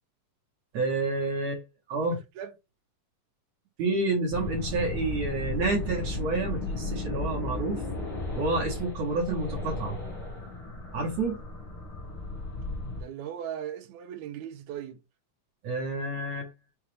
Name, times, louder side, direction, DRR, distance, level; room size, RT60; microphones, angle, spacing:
voice 1, 0.7-1.6 1.9-2.2 3.8-7.8 8.4-10.0 10.9-11.4 15.6-16.5, right 3 dB, 65° right, 1.9 m, -29 dB
sound 1, 4.3-13.0, left 3 dB, 40° left, 1.5 m, -35 dB
voice 2, 12.9-15.0, right 10 dB, 85° right, 1.6 m, -38 dB
5.7 x 2.3 x 3.3 m
omnidirectional pair, 4.0 m